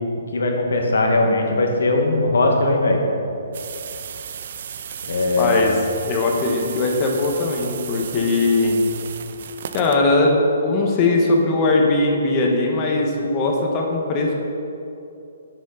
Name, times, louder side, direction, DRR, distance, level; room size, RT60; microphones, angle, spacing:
voice 1, 0.3-3.0 5.1-5.8, left 2 dB, 80° left, 2 dB, 1.4 m, -19 dB
sound 1, 3.5-10.0, right 8 dB, 55° right, 0.4 m, -35 dB
voice 2, 5.4-5.7 6.0-8.8 9.7-14.3, left 2 dB, 30° left, 0 dB, 1.1 m, -20 dB
9.6 x 6.2 x 3.9 m, 2.8 s
hypercardioid pair, 155°, 0 cm